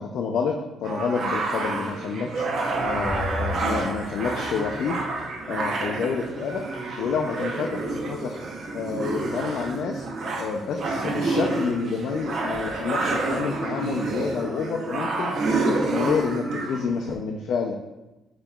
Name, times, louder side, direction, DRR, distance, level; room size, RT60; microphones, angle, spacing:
voice 1, 0.0-2.4 2.8-5.0 5.5-6.6 7.0-8.4 8.7-10.1 10.4-15.4 15.6-17.8, left 5 dB, 70° left, 2 dB, 0.3 m, -28 dB
sound 1, 0.8-17.2, right 3 dB, 60° right, 0.6 m, -28 dB
sound 2, 2.3-5.6, equal, 10° right, 1.3 m, -36 dB
7.0 x 2.9 x 2.2 m, 1.0 s
cardioid pair, 90°, 0 cm